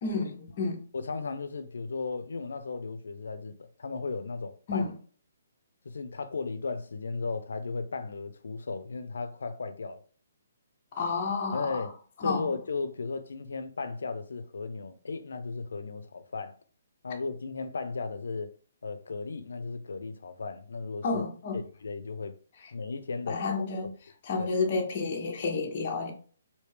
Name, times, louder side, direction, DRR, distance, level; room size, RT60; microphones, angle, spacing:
voice 1, 0.0-0.9 4.7-4.9 10.9-11.9 12.2-12.5 21.0-21.6 22.6-22.7 23.3-23.9 24.2-26.1, left 4 dB, 25° left, 0.6 m, -30 dB
voice 2, 0.9-4.9 5.8-10.0 11.5-11.9 12.2-16.6 17.0-18.5 18.8-21.2 21.5-22.4 22.7-23.4 23.8-23.9 24.4-24.5, left 4 dB, 85° left, 0.4 m, -35 dB
3.3 x 2.6 x 3.3 m
hypercardioid pair, 175°, 0 cm